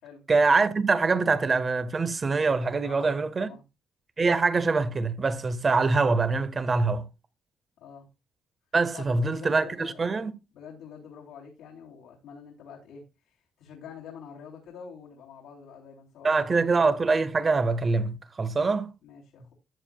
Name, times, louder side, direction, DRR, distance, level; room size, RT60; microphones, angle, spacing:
voice 1, 0.3-3.5 4.2-7.0 8.7-10.3 16.2-18.9, right 4 dB, 35° right, 1.4 m, -24 dB
voice 2, 2.8-3.6 7.8-8.1 8.9-10.1 10.5-16.9 19.0-19.5, left 7 dB, 90° left, 3.5 m, -47 dB
14.0 x 7.6 x 2.4 m
cardioid pair, 90°, 0 cm